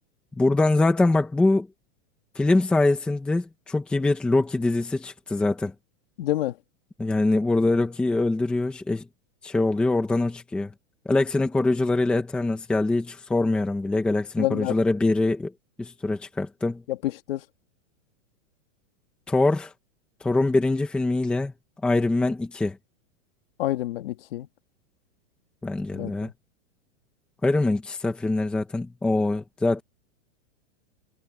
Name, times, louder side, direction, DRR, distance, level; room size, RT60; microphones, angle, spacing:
voice 1, 0.4-1.7 2.3-5.7 7.0-9.0 9.4-10.7 11.1-15.5 15.8-16.8 19.3-19.7 20.2-21.5 21.8-22.8 25.6-26.3 27.4-29.8, left 2 dB, 5° left, 1.0 m, -23 dB
voice 2, 6.2-6.6 14.4-14.8 16.9-17.4 23.6-24.5 25.9-26.3, left 14 dB, 45° left, 2.1 m, -28 dB
supercardioid pair, 180°, 39 cm